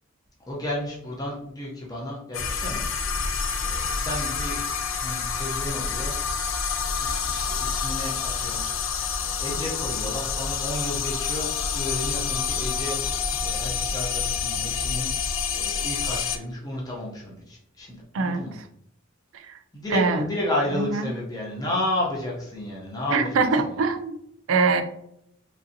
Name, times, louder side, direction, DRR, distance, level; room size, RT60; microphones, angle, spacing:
voice 1, 0.5-2.8 3.6-4.6 5.0-6.2 6.8-8.6 9.2-18.5 19.7-23.4, left 1 dB, 20° left, -4 dB, 0.6 m, -32 dB
sound 1, 2.3-16.4, left 6 dB, 85° left, 0.4 m, -28 dB
voice 2, 18.1-18.7 19.3-19.6 19.9-20.3 20.8-21.1 23.1-24.2 24.5-24.8, right 4 dB, 85° right, 8 dB, 0.4 m, -23 dB
3.1 x 2.6 x 2.6 m, 0.73 s
head